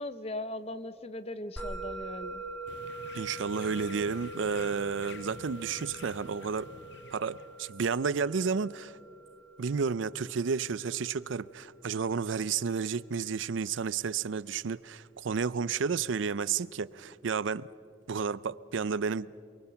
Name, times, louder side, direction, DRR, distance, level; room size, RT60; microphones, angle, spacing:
voice 1, 0.0-2.4, left 1 dB, 30° left, 0.8 m, -39 dB
Musical instrument, 1.6-12.2, right 3 dB, 5° left, 2.9 m, -44 dB
sound 1, 2.7-7.7, left 5 dB, 65° left, 0.7 m, -50 dB
voice 2, 3.1-6.7 7.1-8.9 9.6-17.7 18.1-19.3, right 5 dB, 85° right, 0.5 m, -31 dB
28.5 x 23.0 x 5.8 m
head